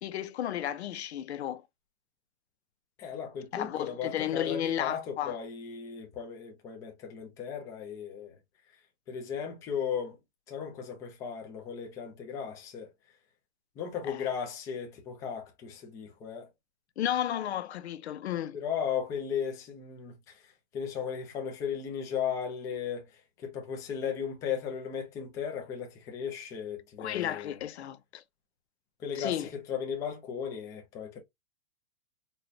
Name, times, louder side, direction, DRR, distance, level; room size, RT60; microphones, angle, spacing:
voice 1, 0.0-1.6 3.5-5.4 14.1-14.3 17.0-18.6 27.0-28.2 29.2-29.5, left 11 dB, 90° left, 0.6 m, -33 dB
voice 2, 3.0-8.4 9.1-10.2 10.5-12.9 13.8-16.5 18.5-20.1 20.7-23.1 23.4-27.5 29.0-29.3 29.7-31.2, left 7 dB, 10° left, 0.4 m, -36 dB
4.2 x 2.3 x 2.9 m
hypercardioid pair, 160°, 32 cm